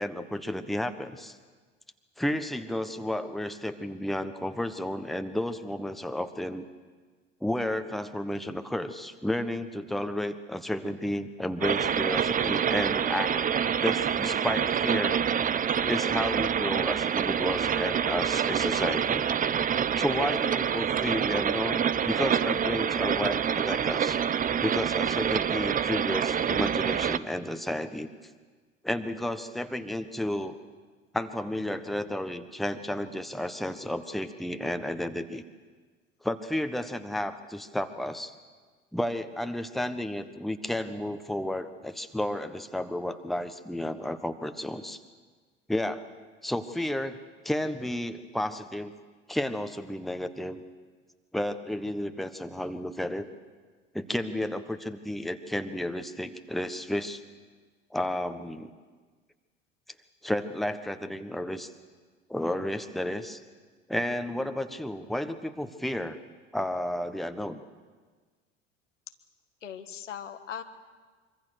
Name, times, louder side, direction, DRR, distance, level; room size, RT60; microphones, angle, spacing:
voice 1, 0.0-1.4 2.2-6.6 7.4-13.3 13.8-15.2 15.8-19.2 20.0-24.2 24.6-28.1 28.8-30.6 31.1-35.4 36.2-38.3 38.9-45.0 45.7-46.0 46.4-47.2 47.4-48.9 49.3-50.6 51.3-53.3 53.9-57.2 57.9-58.7 60.2-61.7 62.3-63.4 63.9-66.2 66.5-67.6, left 1 dB, ahead, 9 dB, 1.4 m, -32 dB
sound 1, 11.6-27.2, right 8 dB, 20° right, 0.8 m, -27 dB
voice 2, 69.6-70.6, left 8 dB, 75° left, 7 dB, 1.6 m, -39 dB
24.5 x 24.5 x 6.6 m, 1.5 s
figure-of-eight pair, 70°, 37 cm